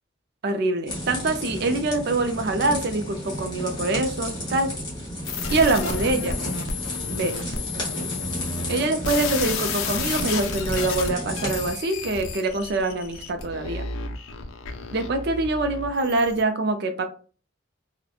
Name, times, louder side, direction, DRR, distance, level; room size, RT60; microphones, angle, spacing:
voice 1, 0.4-4.7 5.5-6.3 7.1-7.4 8.7-13.9 14.9-17.0, right 2 dB, 50° right, 7 dB, 0.4 m, -24 dB
sound 1, 0.9-11.7, equal, 20° left, 0.8 m, -33 dB
sound 2, 5.2-16.4, left 4 dB, 85° left, 0.4 m, -32 dB
2.8 x 2.1 x 2.3 m, 0.38 s
head